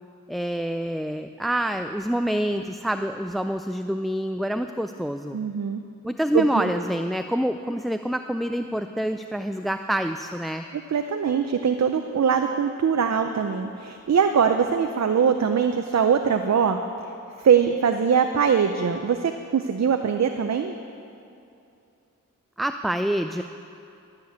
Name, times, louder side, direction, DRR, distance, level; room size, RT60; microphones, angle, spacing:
voice 1, 0.3-5.4 6.0-10.6 22.6-23.4, equal, ahead, 8 dB, 0.3 m, -27 dB
voice 2, 5.3-5.8 6.3-6.7 10.7-16.8 17.4-20.7, right 7 dB, 55° right, 6 dB, 0.6 m, -22 dB
13.0 x 6.8 x 8.1 m, 2.6 s
cardioid pair, 60°, 32 cm